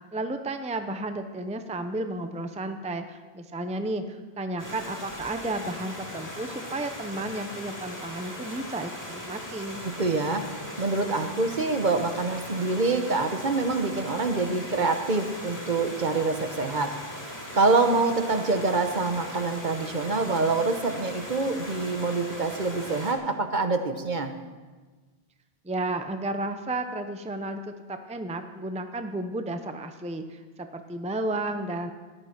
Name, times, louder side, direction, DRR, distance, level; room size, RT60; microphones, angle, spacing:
voice 1, 0.1-9.8 25.6-31.9, right 2 dB, 10° right, 7 dB, 0.6 m, -33 dB
Stream, 4.6-23.1, equal, 20° left, 2.7 m, -39 dB
voice 2, 9.8-10.5 10.8-16.9 17.5-24.3, right 3 dB, 50° right, 7 dB, 1.2 m, -26 dB
15.0 x 11.0 x 5.9 m, 1.3 s
omnidirectional pair, 1.0 m